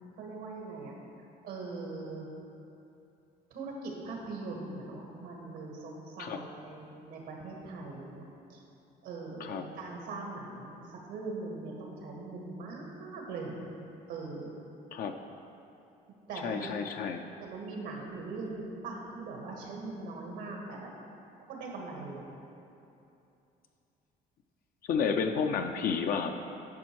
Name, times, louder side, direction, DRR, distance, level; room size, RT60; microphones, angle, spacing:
voice 1, 0.2-1.0 1.4-2.3 3.5-8.2 8.5-8.6 9.0-10.8 11.1-13.6 14.1-14.5 16.3-16.8 17.4-20.9 21.4-22.3, right 3 dB, 90° right, 0 dB, 1.8 m, -41 dB
voice 2, 16.4-17.3 24.9-26.4, left 6 dB, 60° left, 5 dB, 0.5 m, -31 dB
10.5 x 6.0 x 4.6 m, 2.8 s
cardioid pair, 110°, 17 cm